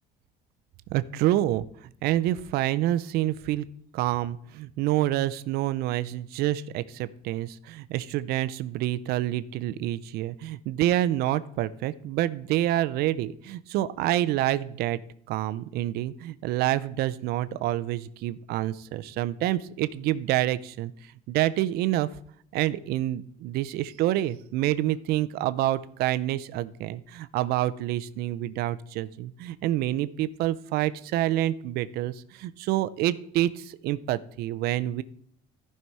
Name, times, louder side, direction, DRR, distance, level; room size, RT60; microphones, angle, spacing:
voice 1, 0.9-3.7 3.9-15.0 15.3-22.1 22.5-35.0, right 14 dB, 70° right, 15 dB, 0.5 m, -27 dB
14.5 x 5.6 x 4.6 m, 0.65 s
cardioid pair, 150°, 17 cm